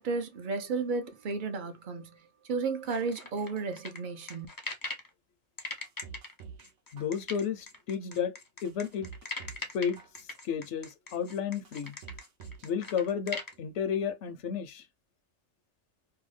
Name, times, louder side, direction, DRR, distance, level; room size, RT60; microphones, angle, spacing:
voice 1, 0.0-4.5, right 4 dB, 50° right, 0.7 m, -33 dB
sound 1, 2.9-5.1 5.6-13.5, left 3 dB, 25° left, 0.4 m, -41 dB
sound 2, 5.7-6.7 7.0-7.6 8.1-8.2 8.7-9.7 10.0-10.6 11.1-11.2 11.7-12.7 13.0-13.6 13.9-14.0, right 6 dB, 80° right, 1.0 m, -48 dB
voice 2, 6.9-8.3 8.6-9.1 9.7-10.0 10.4-11.9 12.6-14.9, left 7 dB, 70° left, 0.9 m, -32 dB
2.8 x 2.3 x 3.1 m
omnidirectional pair, 1.3 m